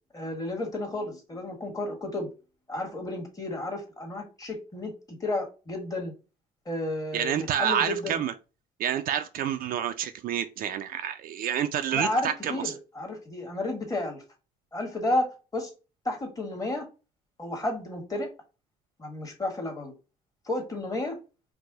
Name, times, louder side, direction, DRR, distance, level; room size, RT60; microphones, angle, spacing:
voice 1, 0.1-2.3 2.7-6.1 6.6-8.2 11.9-14.2 14.7-15.7 16.0-16.9 17.4-18.3 19.0-19.9 20.5-21.2, left 2 dB, 20° left, 1.5 m, -32 dB
voice 2, 7.1-8.3 8.8-12.7, right 9 dB, 60° right, 0.4 m, -28 dB
4.7 x 2.2 x 3.8 m
cardioid pair, 110°, 17 cm